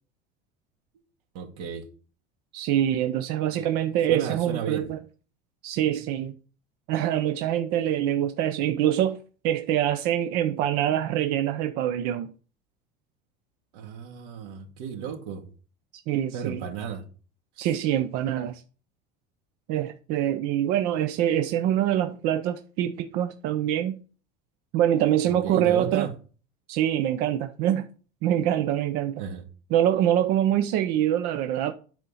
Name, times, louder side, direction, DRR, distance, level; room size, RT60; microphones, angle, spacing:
voice 1, 1.3-1.8 3.6-3.7 4.1-4.9 13.7-15.5 16.3-17.0 25.3-26.1 29.2-29.4, right 7 dB, 85° right, 2.0 m, -33 dB
voice 2, 2.5-5.0 5.6-6.3 6.9-9.2 9.4-12.3 16.1-16.7 17.6-18.6 19.7-24.0 24.7-26.1 26.7-27.9 28.2-29.2 29.7-31.7, right 11 dB, 50° right, 0.6 m, -25 dB
9.5 x 4.4 x 5.6 m
cardioid pair, 180°, 20 cm